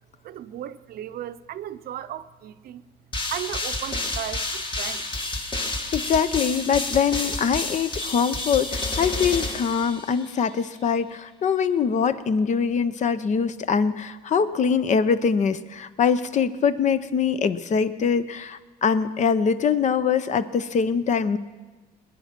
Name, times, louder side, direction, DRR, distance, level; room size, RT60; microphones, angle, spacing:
voice 1, 0.2-2.8 3.3-5.7, right 11 dB, 65° right, 12 dB, 0.7 m, -36 dB
sound 1, 3.1-10.4, left 2 dB, 30° left, 1.8 m, -30 dB
voice 2, 5.9-21.4, left 6 dB, 45° left, 13 dB, 0.7 m, -23 dB
20.0 x 10.0 x 5.9 m, 1.3 s
cardioid pair, 110°, 17 cm